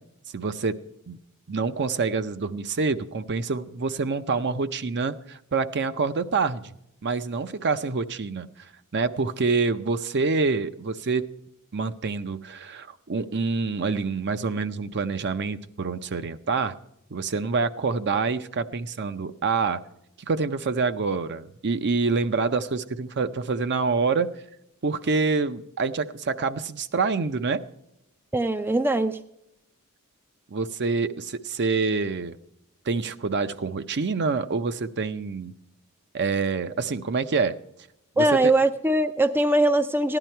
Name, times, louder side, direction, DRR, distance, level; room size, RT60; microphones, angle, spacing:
voice 1, 0.3-0.8 1.1-1.2 1.5-6.7 7.0-8.5 8.9-11.2 11.7-16.7 17.1-19.8 20.3-24.3 24.8-27.6 30.5-32.4 32.9-35.5 36.1-37.6 38.2-38.5, right 4 dB, 50° right, 11 dB, 0.6 m, -26 dB
voice 2, 28.3-29.2 38.2-40.2, right 1 dB, 10° right, 10 dB, 0.4 m, -21 dB
15.5 x 11.0 x 4.4 m, 0.80 s
head